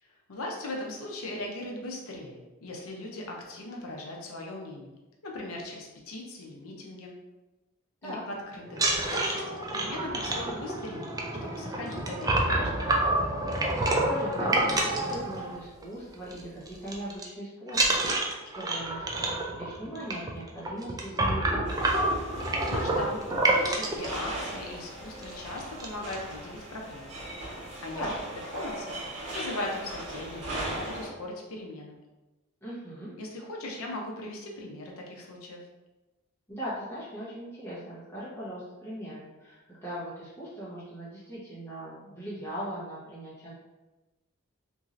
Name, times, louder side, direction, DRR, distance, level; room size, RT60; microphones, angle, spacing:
voice 1, 0.3-4.9 5.2-7.1 8.0-8.9 9.1-12.9 22.7-23.2 23.5-27.2 27.8-28.1 28.3-32.0 33.2-35.6, left 2 dB, 65° left, 0 dB, 0.6 m, -39 dB
sound 1, 8.7-15.8 16.1-16.4 16.7-17.2 17.7-24.1 24.7-24.8 25.2-25.3 25.6-26.1, right 2 dB, 15° right, 0.3 m, -28 dB
voice 2, 14.0-21.9 27.9-28.1 32.6-33.1 36.5-43.5, equal, 10° left, -10 dB, 0.9 m, -39 dB
sound 2, 21.7-31.1, right 1 dB, 75° right, 1.0 m, -38 dB
3.0 x 2.7 x 2.5 m, 1.1 s
head